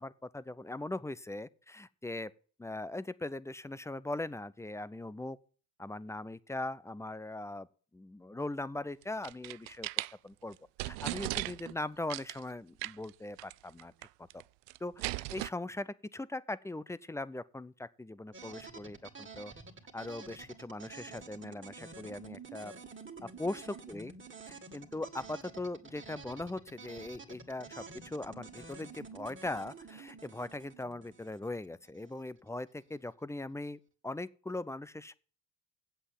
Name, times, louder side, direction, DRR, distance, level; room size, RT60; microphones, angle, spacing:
voice 1, 0.0-2.3 2.6-5.4 5.8-7.7 7.9-13.9 14.2-14.4 14.8-19.5 19.9-22.7 23.4-24.1 24.5-35.1, left 2 dB, 5° left, 0.4 m, -40 dB
sound 1, 9.0-10.1 10.5-10.6 10.8-11.7 12.1-12.4 12.8-13.1 13.4-13.5 13.8-14.4 14.7-15.5, right 23 dB, 65° right, 0.5 m, -37 dB
sound 2, 18.3-32.2, right 4 dB, 25° right, 2.3 m, -50 dB
8.1 x 8.0 x 7.1 m
hypercardioid pair, 70°, 49 cm